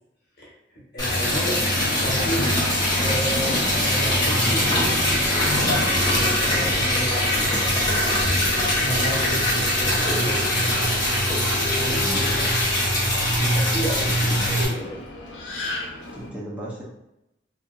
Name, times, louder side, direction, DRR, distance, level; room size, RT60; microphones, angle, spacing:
voice 1, 0.4-1.7 1.9-2.5 2.9-4.9 5.4-12.3 13.2-14.4, right 1 dB, 60° left, -5 dB, 1.1 m, -33 dB
Subway metro underground, 1.0-16.3, left 2 dB, 90° left, 0.5 m, -32 dB
Liquid, 1.0-14.6, left 1 dB, 25° left, 0.8 m, -22 dB
voice 2, 11.9-12.3 14.0-14.4 14.8-14.9 16.1-16.8, right 1 dB, 5° right, -6 dB, 0.5 m, -36 dB
2.7 x 2.4 x 2.3 m, 0.87 s
head